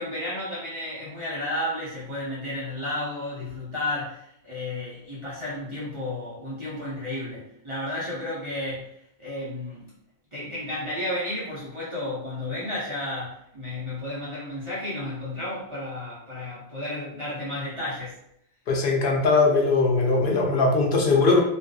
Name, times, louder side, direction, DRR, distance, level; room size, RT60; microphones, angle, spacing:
voice 1, 0.0-9.9 10.3-18.2, left 1 dB, 30° right, -10 dB, 0.8 m, -32 dB
voice 2, 18.7-21.4, left 3 dB, 60° left, 0 dB, 0.7 m, -20 dB
2.5 x 2.3 x 2.3 m, 0.74 s
omnidirectional pair, 1.1 m